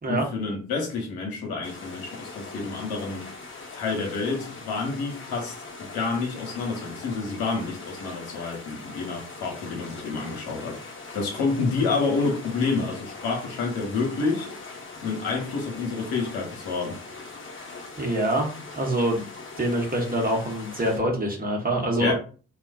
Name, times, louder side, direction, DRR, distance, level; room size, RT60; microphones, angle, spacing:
voice 1, 0.1-3.3 3.7-5.5 5.8-14.5 15.0-17.0 22.0-22.1, left 4 dB, 65° left, 0.9 m, -28 dB
sound 1, 1.6-21.0, left 3 dB, 30° left, 0.9 m, -41 dB
voice 2, 18.0-19.2 19.6-22.1, right 1 dB, 20° right, 1.0 m, -25 dB
2.4 x 2.3 x 2.3 m
hypercardioid pair, 40°, 39 cm